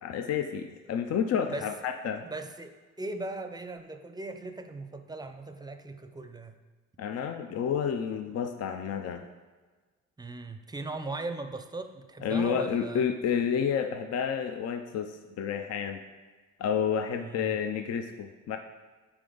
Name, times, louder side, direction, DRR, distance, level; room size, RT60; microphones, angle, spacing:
voice 1, 0.0-2.3 7.0-9.2 12.2-16.0 16.6-18.6, left 7 dB, 55° left, 6 dB, 0.5 m, -30 dB
voice 2, 2.2-6.6 10.2-13.1 17.2-17.6, right 2 dB, 15° right, 8 dB, 0.6 m, -38 dB
8.6 x 4.8 x 3.9 m, 1.3 s
cardioid pair, 90°, 30 cm